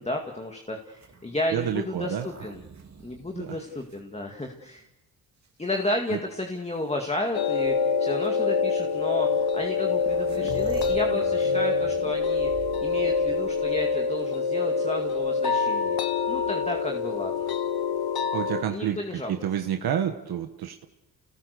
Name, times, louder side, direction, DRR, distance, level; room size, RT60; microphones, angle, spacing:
voice 1, 0.0-2.6 3.0-4.9 5.6-12.5 12.8-16.0 16.3-17.5 18.7-19.4, left 1 dB, 15° left, 2 dB, 2.1 m, -32 dB
sound 1, 0.9-4.7 5.4-6.2 7.3-7.4 8.1-8.3 9.4-9.5 9.7-14.2 16.1-16.8, right 5 dB, 45° right, 3.1 m, -44 dB
voice 2, 1.5-2.3 3.3-3.6 6.1-6.2 18.3-20.8, right 9 dB, 70° right, 5 dB, 1.4 m, -29 dB
sound 2, 7.3-18.6, left 5 dB, 70° left, 1.6 m, -26 dB
29.5 x 18.5 x 6.8 m, 0.95 s
cardioid pair, 90°, 38 cm